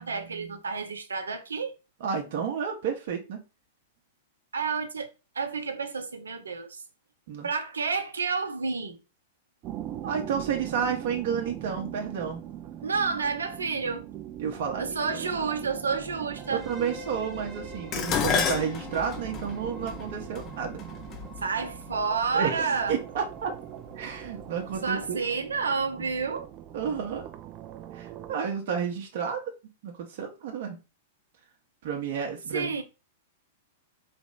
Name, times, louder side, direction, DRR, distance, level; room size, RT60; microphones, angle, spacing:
voice 1, 0.0-1.7 4.5-5.1 5.3-6.8 7.4-9.0 12.8-14.1 14.8-16.6 21.4-23.0 24.8-26.5 32.5-32.8, right 5 dB, 70° right, 0.7 m, -30 dB
voice 2, 2.0-3.4 7.3-7.5 10.0-12.4 14.4-14.9 16.5-20.8 22.3-23.5 24.0-25.2 26.7-27.3 27.9-29.4 29.8-30.8 31.8-32.8, right 7 dB, 50° right, 0.9 m, -31 dB
sound 1, 9.6-28.3, right 12 dB, 30° right, 0.5 m, -41 dB
sound 2, 16.3-24.1, left 2 dB, 15° right, 0.9 m, -49 dB
Dishes pots and pans, 17.9-22.3 23.2-23.6 24.0-24.8 25.0-25.1, left 7 dB, 30° left, 0.6 m, -31 dB
4.4 x 3.0 x 3.8 m
figure-of-eight pair, 100°, 0 cm